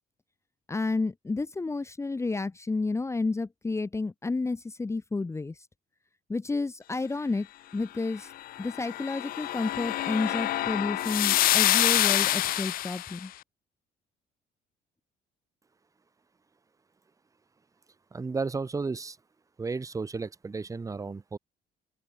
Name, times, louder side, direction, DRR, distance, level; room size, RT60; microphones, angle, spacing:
voice 1, 0.7-5.5 6.3-7.5 7.7-8.3 8.6-13.3, left 3 dB, 15° left, 1.1 m, -31 dB
sound 1, 8.5-13.2, left 14 dB, 60° left, 0.4 m, -26 dB
voice 2, 18.1-19.2 19.6-21.4, right 4 dB, 20° right, 1.1 m, -33 dB
open air
cardioid pair, 110°, 17 cm